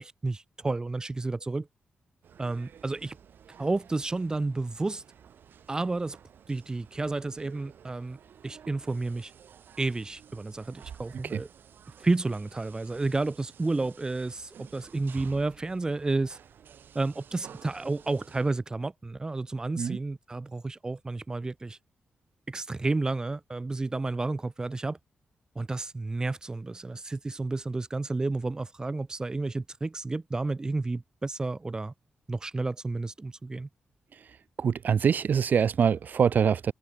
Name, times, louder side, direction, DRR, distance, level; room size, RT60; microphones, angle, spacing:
voice 1, 0.0-1.7 2.4-3.2 3.6-5.0 5.7-6.2 6.5-8.2 8.4-9.3 9.8-11.5 12.0-16.4 16.9-21.8 22.5-25.0 25.5-31.9 32.3-33.7, right 3 dB, 20° right, 1.5 m, -31 dB
sound 1, 2.2-18.6, right 8 dB, 70° right, 7.2 m, -52 dB
voice 2, 34.6-36.7, right 7 dB, 55° right, 2.0 m, -24 dB
wide cardioid pair, 150°, 4 cm